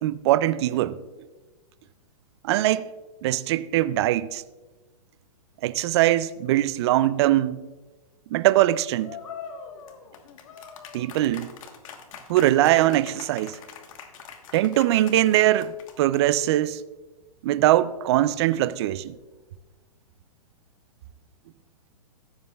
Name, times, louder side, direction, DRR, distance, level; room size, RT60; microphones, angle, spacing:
voice 1, 0.0-1.0 2.4-2.9 3.2-4.4 5.6-7.7 8.3-9.2 10.9-11.5 12.3-13.6 14.5-16.8 17.4-19.2, right 14 dB, 45° right, 0.4 m, -22 dB
sound 1, 9.0-16.4, left 7 dB, 60° left, 1.2 m, -43 dB
15.0 x 7.4 x 2.3 m
hypercardioid pair, 140°, 20 cm